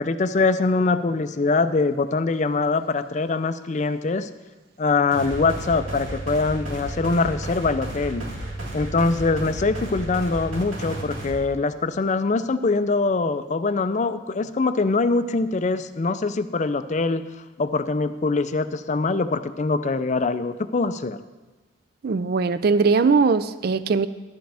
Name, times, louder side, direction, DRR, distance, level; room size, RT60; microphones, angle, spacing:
voice 1, 0.0-4.3 4.8-8.3 8.7-17.2 17.6-21.2, left 3 dB, 35° left, 12 dB, 0.4 m, -23 dB
sound 1, 5.1-11.3, right 1 dB, 90° right, 2.1 m, -33 dB
voice 2, 22.0-24.1, right 4 dB, 50° right, 14 dB, 0.4 m, -20 dB
11.0 x 10.5 x 3.4 m, 1.2 s
head